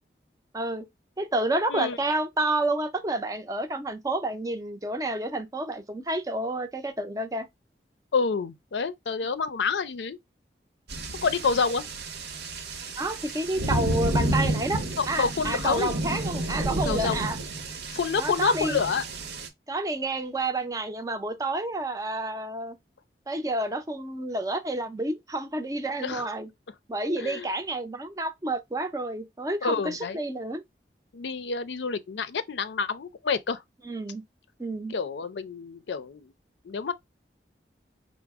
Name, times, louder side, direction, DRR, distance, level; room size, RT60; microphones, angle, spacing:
voice 1, 0.5-0.9 1.2-7.5 13.0-14.8 15.1-17.4 18.2-18.8 19.7-22.8 23.3-26.5 26.9-30.6 33.8-34.2 34.6-34.9, right 2 dB, 20° right, 0.4 m, -29 dB
voice 2, 8.1-10.2 11.2-11.9 15.0-16.0 16.8-17.3 17.9-19.0 26.0-26.2 27.0-27.5 29.6-30.2 31.1-33.6 34.9-36.3 36.6-36.9, left 5 dB, 85° left, 0.5 m, -28 dB
sound 1, 10.9-19.5, right 1 dB, 70° right, 0.8 m, -31 dB
4.9 x 2.0 x 3.4 m
head